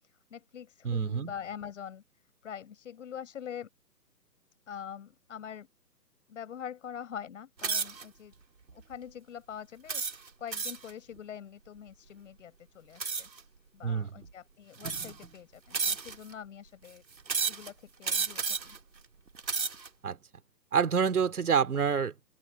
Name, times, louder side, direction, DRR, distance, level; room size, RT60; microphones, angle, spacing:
voice 1, 0.3-2.0 2.4-3.7 4.7-5.7 6.3-8.3 8.7-13.3 13.7-17.0 17.4-18.8, left 8 dB, 45° left, 6.0 m, -44 dB
voice 2, 0.8-1.3 13.8-14.2 20.0-20.2 20.7-22.1, right 6 dB, 60° right, 3.6 m, -27 dB
sound 1, 7.6-8.0 8.7-8.9 9.9-10.9 13.0-13.4 14.2-14.3 14.8-15.3 15.7-16.3 17.3-17.7 18.0-18.8 19.3-19.9, right 5 dB, 85° right, 2.3 m, -32 dB
figure-of-eight pair, 145°, 50 cm